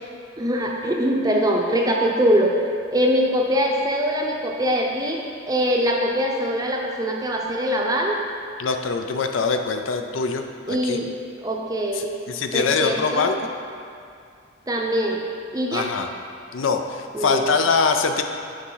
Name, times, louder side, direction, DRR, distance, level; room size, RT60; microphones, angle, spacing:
voice 1, 0.4-2.5 2.9-5.2 5.5-8.2 10.7-11.1 11.4-12.1 12.5-13.3 14.7-15.2 15.5-15.9 17.1-17.6, equal, 15° right, 0 dB, 0.6 m, -22 dB
voice 2, 8.6-11.0 12.0-13.5 15.7-16.1 16.5-18.2, left 4 dB, 70° left, 5 dB, 0.5 m, -23 dB
6.4 x 4.7 x 5.6 m, 2.3 s
head